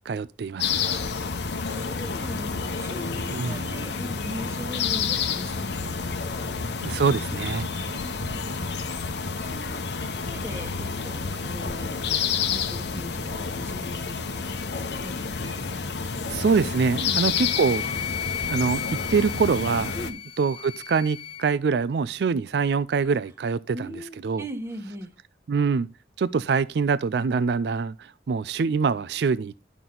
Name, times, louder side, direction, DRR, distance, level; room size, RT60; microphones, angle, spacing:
voice 1, 0.1-0.8 3.3-3.6 6.8-7.7 16.2-17.8 18.5-19.9 20.4-23.9 24.2-24.4 25.5-25.9 26.2-29.5, right 5 dB, 65° right, 0.4 m, -24 dB
sound 1, 0.6-20.1, left 5 dB, 70° left, 0.9 m, -29 dB
voice 2, 1.0-1.3 1.7-6.5 7.9-8.7 9.4-15.2 17.0-17.2 19.9-20.2 23.7-25.1, equal, 15° right, 1.1 m, -40 dB
Wind instrument woodwind instrument, 17.3-21.4, left 9 dB, 35° left, 0.7 m, -34 dB
11.0 x 6.0 x 3.8 m
head